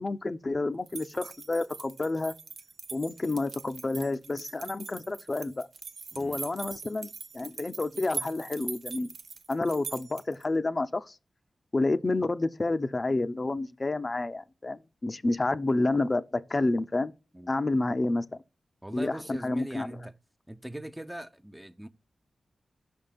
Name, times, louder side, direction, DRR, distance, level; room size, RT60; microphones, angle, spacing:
voice 1, 0.0-2.3 2.9-5.7 6.2-7.1 7.3-9.1 9.5-11.1 11.7-17.1 17.5-18.2 18.9-20.0, left 2 dB, 35° left, 0.5 m, -29 dB
sound 1, 0.9-10.4, right 5 dB, 75° right, 0.7 m, -42 dB
voice 2, 6.1-6.4 17.3-17.5 18.8-20.1 20.5-21.9, right 1 dB, 10° right, 0.6 m, -40 dB
5.9 x 3.5 x 5.7 m
wide cardioid pair, 90°, 0 cm